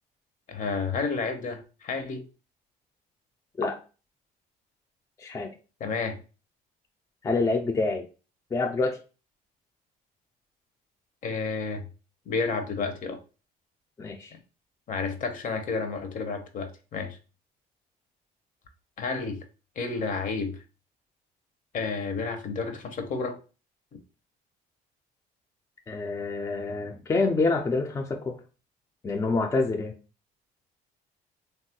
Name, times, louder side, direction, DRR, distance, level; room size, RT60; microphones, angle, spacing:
voice 1, 0.5-2.2 5.8-6.2 11.2-11.9 12.3-13.2 14.9-17.2 19.0-19.4 19.8-20.6 21.7-23.4, left 4 dB, 50° left, 7 dB, 0.6 m, -31 dB
voice 2, 5.2-5.5 7.2-8.1 8.5-9.0 14.0-14.3 25.9-28.4 29.0-29.9, left 3 dB, 20° left, 3 dB, 0.3 m, -27 dB
3.1 x 2.3 x 2.8 m, 0.34 s
cardioid pair, 110°, 17 cm